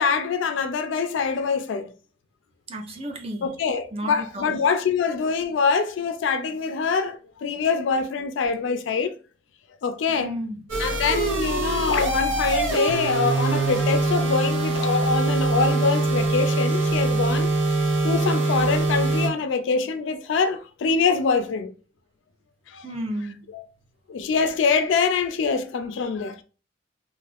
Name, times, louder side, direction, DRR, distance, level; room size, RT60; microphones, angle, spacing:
voice 1, 0.0-1.9 3.4-9.2 9.8-10.4 10.8-17.5 18.0-21.7 22.7-22.8 23.5-23.6 24.1-26.4, left 5 dB, 70° left, 0.3 m, -24 dB
voice 2, 2.7-3.5 3.9-4.6 10.1-10.6 22.8-23.4, right 1 dB, 30° right, 0.6 m, -32 dB
sound 1, 10.7-19.3, right 2 dB, 85° right, 0.8 m, -23 dB
2.5 x 2.4 x 3.3 m
head